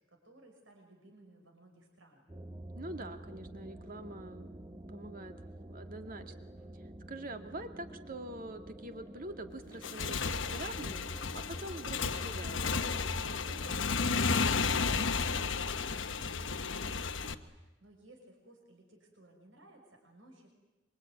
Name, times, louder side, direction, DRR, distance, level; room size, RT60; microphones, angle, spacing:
voice 1, 0.0-2.3 13.1-20.5, right 1 dB, 70° right, 2 dB, 5.8 m, -58 dB
sound 1, 2.3-14.5, right 1 dB, 20° right, 1.0 m, -50 dB
voice 2, 2.7-4.6 4.9-6.3 6.7-12.6, right 1 dB, 45° right, 7 dB, 2.1 m, -45 dB
Motorcycle / Engine, 9.7-17.3, left 4 dB, 70° left, 1.2 m, -33 dB
26.0 x 24.5 x 9.4 m, 1.1 s
head